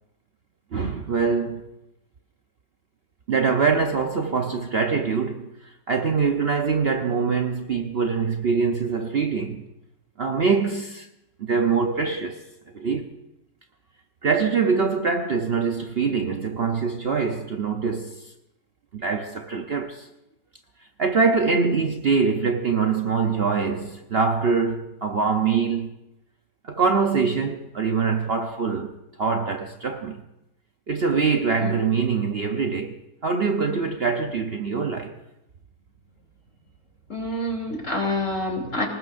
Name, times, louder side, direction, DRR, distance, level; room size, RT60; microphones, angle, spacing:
voice 1, 0.7-1.7 3.3-9.6 10.2-11.1 11.4-12.5 12.7-13.1 14.2-18.3 18.9-20.1 21.0-25.9 26.6-30.2 30.9-35.2 38.6-38.8, right 5 dB, 50° right, 0.9 m, -24 dB
voice 2, 37.1-38.9, left 1 dB, 50° left, 3.3 m, -27 dB
25.5 x 19.0 x 2.6 m
omnidirectional pair, 1.6 m